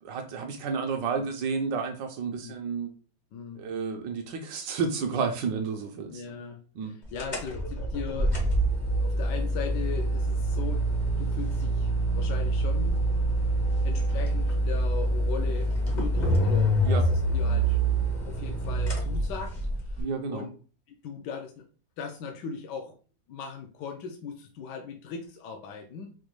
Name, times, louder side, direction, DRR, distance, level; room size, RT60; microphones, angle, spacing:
voice 1, 0.0-2.9 3.5-6.2 6.7-7.0 16.8-17.0 20.0-20.5, right 5 dB, 75° right, 4 dB, 1.3 m, -31 dB
voice 2, 3.3-3.6 6.1-8.4 8.7-10.8 11.2-13.1 13.8-17.8 18.1-19.6 19.9-20.0 20.3-20.5 21.0-21.6 22.0-23.0 23.3-26.1, left 5 dB, 75° left, 2 dB, 1.1 m, -39 dB
sound 1, 7.1-20.0, right 1 dB, 40° left, 0.6 m, -26 dB
4.9 x 2.1 x 3.0 m, 0.38 s
omnidirectional pair, 2.0 m